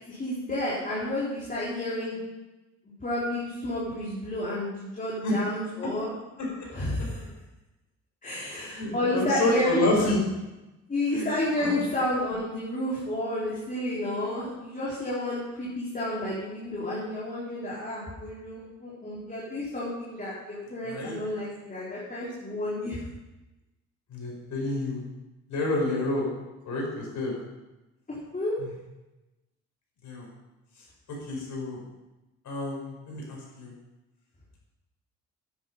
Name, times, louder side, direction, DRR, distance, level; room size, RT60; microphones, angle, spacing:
voice 1, 0.0-2.2 3.0-6.1 6.7-7.2 8.2-9.9 10.9-23.0 28.1-28.6, left 1 dB, 25° left, -8 dB, 4.1 m, -31 dB
voice 2, 8.6-10.2 11.1-11.3 11.6-11.8 20.8-21.2 24.1-25.0 25.5-26.3 26.7-27.3 28.6-28.7 30.0-30.3 31.1-31.8 32.5-33.7, left 2 dB, 70° left, -2 dB, 5.2 m, -28 dB
10.5 x 9.9 x 5.5 m, 1.0 s
cardioid pair, 90°, 30 cm